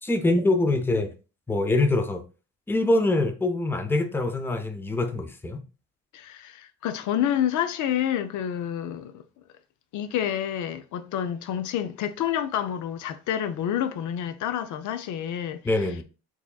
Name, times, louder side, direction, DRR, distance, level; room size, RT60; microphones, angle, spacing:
voice 1, 0.0-1.1 1.5-2.2 2.7-5.6 15.6-16.0, left 2 dB, 5° left, 0.5 m, -24 dB
voice 2, 6.1-9.2 9.9-15.9, left 10 dB, 75° left, 0.5 m, -28 dB
4.5 x 2.8 x 2.2 m
cardioid pair, 90°, 30 cm